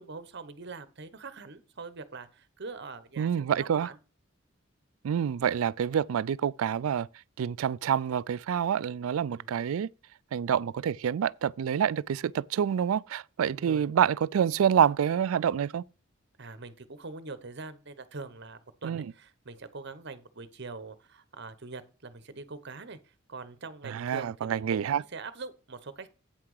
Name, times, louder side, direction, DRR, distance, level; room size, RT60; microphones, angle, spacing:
voice 1, 0.0-3.3 3.6-4.0 9.3-9.5 13.6-13.9 16.4-23.0 23.3-26.1, right 3 dB, 55° right, 1.0 m, -43 dB
voice 2, 3.2-3.9 5.0-7.1 7.4-9.9 10.3-15.8 18.8-19.1 23.8-25.0, right 8 dB, 90° right, 0.3 m, -27 dB
8.7 x 5.9 x 4.8 m
head